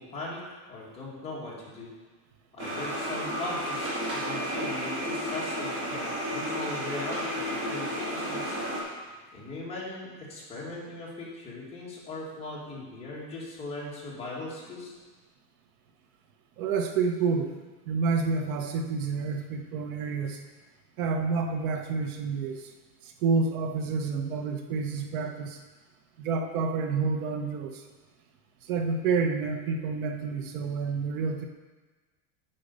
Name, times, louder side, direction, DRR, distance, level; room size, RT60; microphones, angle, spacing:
voice 1, 0.0-1.9 2.5-8.6 9.3-14.9, left 2 dB, 15° left, -6 dB, 1.9 m, -39 dB
sound 1, 2.6-8.8, equal, 25° right, 2.2 m, -32 dB
voice 2, 16.6-17.5 17.9-20.4 21.0-22.7 23.2-25.6 26.2-27.7 28.7-31.4, right 4 dB, 70° right, 5 dB, 1.0 m, -29 dB
8.8 x 5.7 x 5.4 m, 1.3 s
cardioid pair, 170°, 44 cm